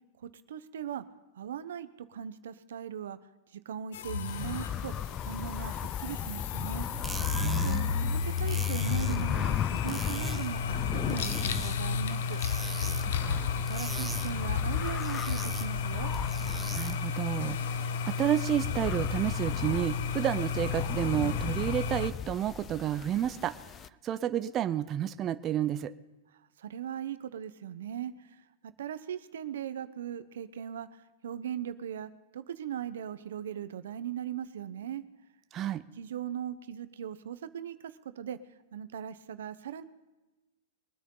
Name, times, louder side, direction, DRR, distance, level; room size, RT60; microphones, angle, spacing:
voice 1, 0.2-1.0 1.3-3.2 3.5-4.9 5.2-6.9 7.6-12.4 13.7-16.1 26.6-35.0 36.0-38.4 38.7-39.8, right 9 dB, 80° right, 12 dB, 0.9 m, -39 dB
sound 1, 3.9-22.1, left 6 dB, 75° left, 0.9 m, -33 dB
sound 2, 4.3-23.9, left 9 dB, 25° left, 0.4 m, -37 dB
sound 3, 6.8-17.2, right 3 dB, 10° right, 0.8 m, -41 dB
voice 2, 7.4-8.1 13.0-13.5 16.8-23.8 24.0-25.9 35.5-35.8, right 11 dB, 30° right, 11 dB, 0.5 m, -31 dB
23.0 x 9.4 x 3.9 m, 1.1 s
hypercardioid pair, 140°, 0 cm